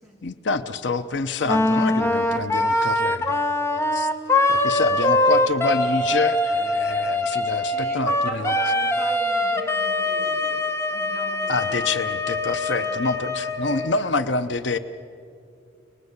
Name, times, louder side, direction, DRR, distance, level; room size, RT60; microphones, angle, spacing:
voice 1, 0.2-3.4 3.9-4.1 4.5-8.5 11.5-14.8, left 3 dB, 75° left, 11 dB, 0.8 m, -27 dB
Wind instrument woodwind instrument, 1.5-13.9, left 1 dB, 15° left, 1.1 m, -23 dB
voice 2, 7.7-11.9 12.3-13.1 13.6-13.9, equal, 5° right, -3 dB, 4.1 m, -40 dB
30.0 x 20.0 x 8.2 m, 2.4 s
head